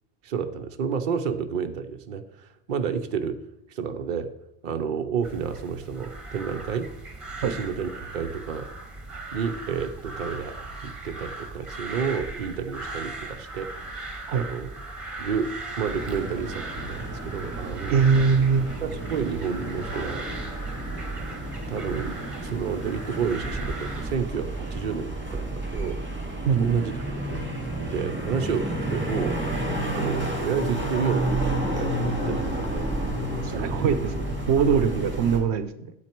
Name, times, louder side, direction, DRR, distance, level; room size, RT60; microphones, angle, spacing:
voice 1, 0.2-3.4 3.7-4.3 4.6-6.9 7.4-8.7 9.3-13.7 14.3-14.7 15.2-18.0 18.8-20.3 21.7-26.0 26.6-27.5 27.8-29.4 29.9-32.9 33.5-33.9, right 6 dB, 55° right, 7 dB, 0.8 m, -30 dB
sound 1, 5.2-24.2, right 2 dB, 30° right, 1.4 m, -38 dB
sound 2, 15.9-35.4, right 1 dB, 10° right, 1.9 m, -31 dB
voice 2, 17.9-18.7 26.4-26.8 33.4-35.9, right 6 dB, 80° right, 12 dB, 0.9 m, -22 dB
8.9 x 8.4 x 4.5 m, 0.81 s
omnidirectional pair, 1.1 m